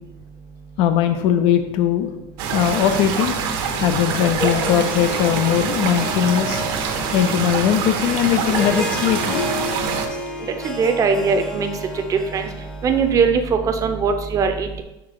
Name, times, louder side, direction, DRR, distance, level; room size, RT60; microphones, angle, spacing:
voice 1, 0.8-2.1 2.5-3.3 3.8-6.6 7.1-9.4, left 10 dB, 50° left, 8 dB, 0.4 m, -19 dB
sound 1, 2.4-10.1, right 6 dB, 65° right, 1.0 m, -25 dB
Harp, 4.3-13.3, left 1 dB, 5° left, 0.7 m, -31 dB
voice 2, 10.6-11.7 11.9-12.5 12.8-14.8, right 5 dB, 25° right, 6 dB, 0.7 m, -20 dB
5.9 x 3.7 x 4.7 m, 0.96 s
supercardioid pair, 135°, 12 cm